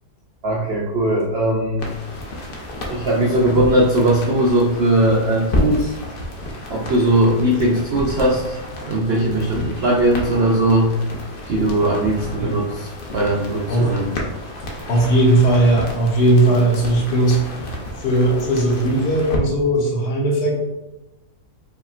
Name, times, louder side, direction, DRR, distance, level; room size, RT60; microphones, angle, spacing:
voice 1, 0.4-1.9 2.9-5.9 6.7-8.6 8.9-10.9 11.5-14.1, right 1 dB, 80° right, -2 dB, 0.5 m, -19 dB
sound 1, 1.8-19.4, left 1 dB, 60° left, 0.5 m, -31 dB
voice 2, 14.9-17.4 17.7-20.6, right 1 dB, 75° left, -2 dB, 1.5 m, -17 dB
5.1 x 2.8 x 2.4 m, 1.0 s
omnidirectional pair, 1.8 m